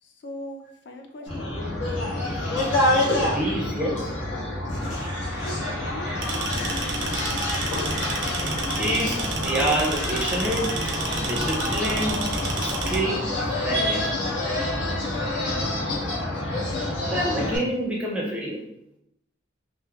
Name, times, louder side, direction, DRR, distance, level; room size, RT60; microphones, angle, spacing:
voice 1, 0.0-1.5 5.3-7.7 15.5-16.0, left 1 dB, 70° left, 4 dB, 0.3 m, -41 dB
sound 1, 1.3-17.6, left 1 dB, 85° left, 0.9 m, -27 dB
voice 2, 2.2-2.6 3.3-4.1 5.0-5.1 8.4-12.2 12.6-13.3 13.6-14.1 17.0-18.6, right 1 dB, 5° right, -4 dB, 0.5 m, -28 dB
sound 2, 6.2-13.0, right 3 dB, 80° right, 0.4 m, -31 dB
3.1 x 2.0 x 2.3 m, 0.77 s
head